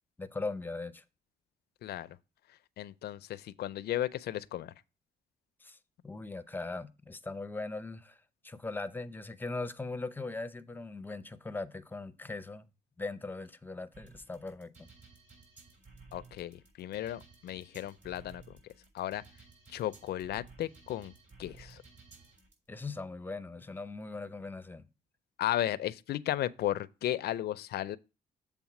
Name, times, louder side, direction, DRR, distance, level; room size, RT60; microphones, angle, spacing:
voice 1, 0.2-1.0 5.6-5.8 6.0-8.2 8.4-12.7 13.0-14.9 22.7-24.8, left 3 dB, 10° left, 0.6 m, -40 dB
voice 2, 1.8-2.2 2.8-4.7 16.1-19.2 19.7-21.1 21.4-21.8 25.4-28.0, left 13 dB, 75° left, 0.5 m, -35 dB
sound 1, 13.9-22.5, right 4 dB, 45° right, 3.6 m, -56 dB
7.3 x 3.6 x 5.8 m
cardioid pair, 95°, 17 cm